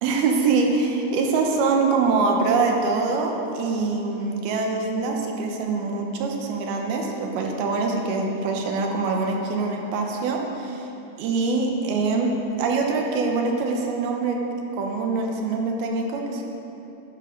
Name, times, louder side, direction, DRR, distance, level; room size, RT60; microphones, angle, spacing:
voice 1, 0.0-10.8 11.2-12.3 12.6-14.4 14.8-16.4, right 4 dB, 75° right, 1 dB, 2.9 m, -24 dB
12.5 x 9.4 x 5.2 m, 3.0 s
omnidirectional pair, 4.6 m